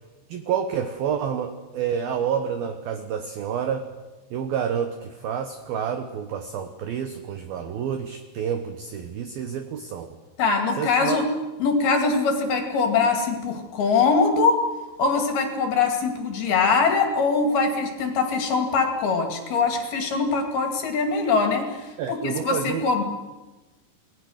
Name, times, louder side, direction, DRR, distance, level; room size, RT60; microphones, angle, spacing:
voice 1, 0.3-3.9 4.3-10.2 10.8-11.2 22.0-22.9, right 8 dB, 80° right, 8 dB, 2.2 m, -29 dB
voice 2, 10.4-11.3 11.6-14.6 15.0-23.0, left 4 dB, 55° left, 4 dB, 3.9 m, -22 dB
29.0 x 19.5 x 6.5 m, 1.2 s
omnidirectional pair, 5.9 m